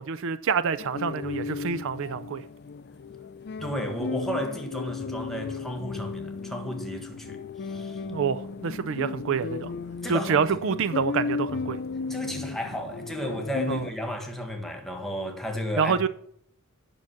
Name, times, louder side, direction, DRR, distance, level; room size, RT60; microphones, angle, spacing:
voice 1, 0.0-2.4 8.1-9.7 10.1-11.8 13.7-13.8 15.8-16.1, right 6 dB, 65° right, 0.4 m, -27 dB
sound 1, 0.8-13.9, left 4 dB, 50° left, 0.4 m, -35 dB
voice 2, 3.6-8.0 10.0-10.6 12.1-16.0, equal, ahead, 1.5 m, -33 dB
9.0 x 5.9 x 5.7 m
head